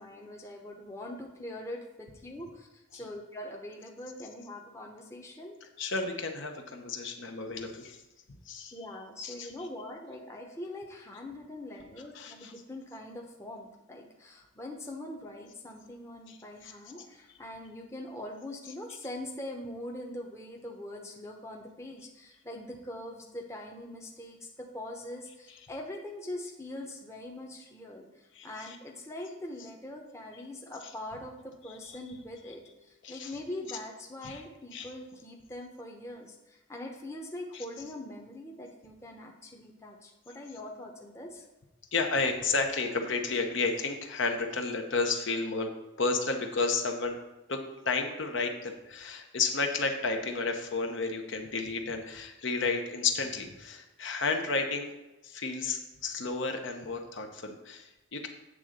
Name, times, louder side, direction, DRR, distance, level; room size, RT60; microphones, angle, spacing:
voice 1, 0.0-5.6 8.7-28.1 28.4-41.4, left 1 dB, 15° left, 0 dB, 0.8 m, -42 dB
voice 2, 5.8-8.0 8.5-8.7 9.2-9.7 12.1-12.5 16.3-16.4 16.9-17.0 28.3-28.8 33.0-33.3 34.2-34.4 34.7-34.9 37.5-37.6 41.9-45.7 46.0-47.2 47.5-54.9 55.2-58.3, left 4 dB, 60° left, 4 dB, 0.8 m, -32 dB
8.5 x 3.7 x 6.5 m, 1.0 s
head